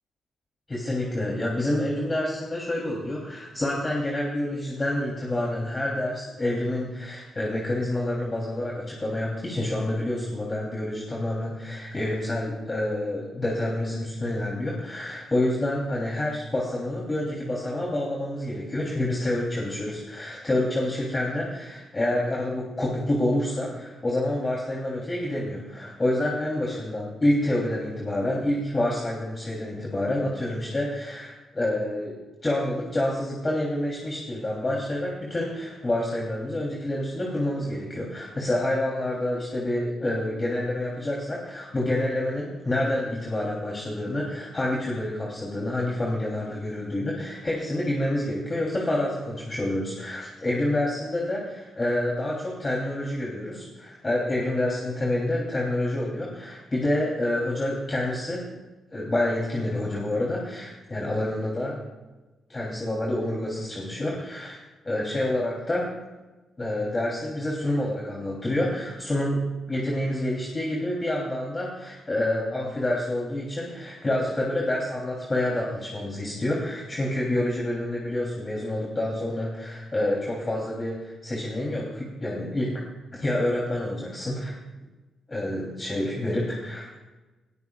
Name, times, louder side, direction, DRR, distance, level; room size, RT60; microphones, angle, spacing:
voice 1, 0.7-32.2 32.4-58.4 58.9-61.8 62.5-64.6 64.8-65.9 66.6-82.8 83.1-84.5 85.3-86.9, left 1 dB, 25° left, -3 dB, 3.3 m, -28 dB
20.5 x 13.5 x 2.4 m, 1.1 s
cardioid pair, 70°, 0 cm